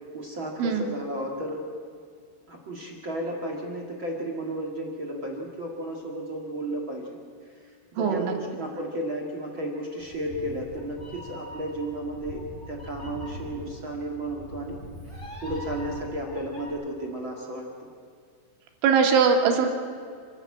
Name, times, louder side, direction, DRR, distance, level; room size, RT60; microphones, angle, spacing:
voice 1, 0.1-1.6 2.5-7.2 7.4-14.8 15.4-17.7, right 1 dB, 50° right, -1 dB, 1.5 m, -33 dB
voice 2, 8.0-8.3 18.8-19.7, right 6 dB, 80° right, 3 dB, 4.3 m, -21 dB
Meow, 10.0-16.7, left 1 dB, 5° left, 4.9 m, -41 dB
28.0 x 13.0 x 8.6 m, 2.2 s
omnidirectional pair, 5.4 m